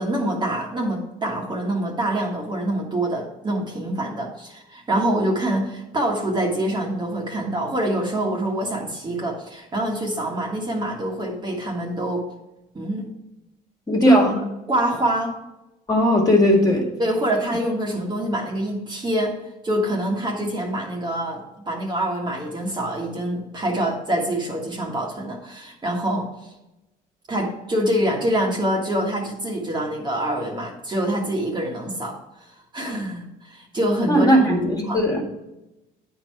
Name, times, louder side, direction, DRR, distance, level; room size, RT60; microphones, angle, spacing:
voice 1, 0.0-12.2 12.7-13.1 14.0-14.2 14.7-15.4 17.0-19.3 19.6-26.5 27.3-32.5 32.7-34.3 34.8-35.0, right 1 dB, 25° right, -1 dB, 1.5 m, -25 dB
voice 2, 13.9-14.4 15.9-16.9 34.1-35.2, equal, 20° left, -1 dB, 1.9 m, -17 dB
9.2 x 4.6 x 4.6 m, 0.95 s
cardioid pair, 110°, 17 cm